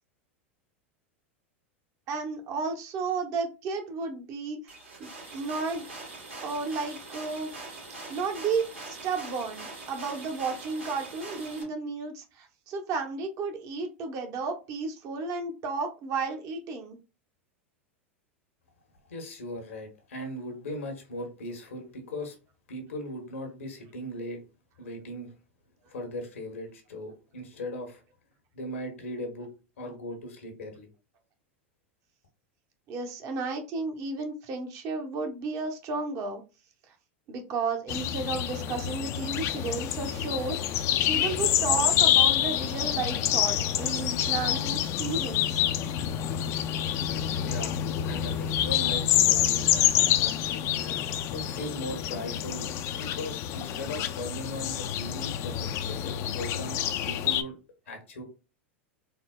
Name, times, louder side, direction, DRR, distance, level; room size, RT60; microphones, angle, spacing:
voice 1, 2.1-5.9 6.4-7.5 8.1-17.0 32.9-36.4 37.3-40.8 41.1-45.7, right 4 dB, 50° right, 0.8 m, -33 dB
sound 1, 4.7-11.6, right 2 dB, 80° right, 1.6 m, -43 dB
voice 2, 19.1-22.4 22.7-24.4 24.8-25.3 25.9-28.0 28.5-29.5 29.8-30.9 47.4-50.6 51.3-57.5 57.9-58.2, left 1 dB, 85° left, 1.0 m, -38 dB
sound 2, 37.9-57.4, left 11 dB, 45° left, 0.3 m, -27 dB
4.0 x 2.0 x 2.3 m
hypercardioid pair, 95°, 7 cm